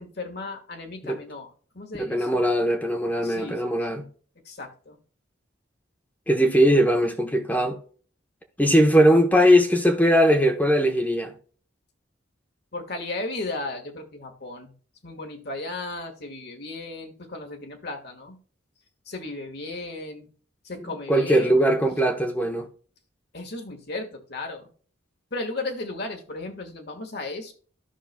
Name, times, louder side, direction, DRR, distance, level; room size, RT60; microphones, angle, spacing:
voice 1, 0.0-2.4 3.2-3.9 4.5-5.0 12.7-14.7 15.0-18.4 19.1-20.3 20.6-21.6 23.3-24.7 25.3-27.5, left 2 dB, 60° left, 1.7 m, -35 dB
voice 2, 2.0-4.1 6.3-7.8 8.6-11.3 21.1-22.7, equal, 10° left, 1.0 m, -20 dB
14.0 x 5.8 x 2.3 m
head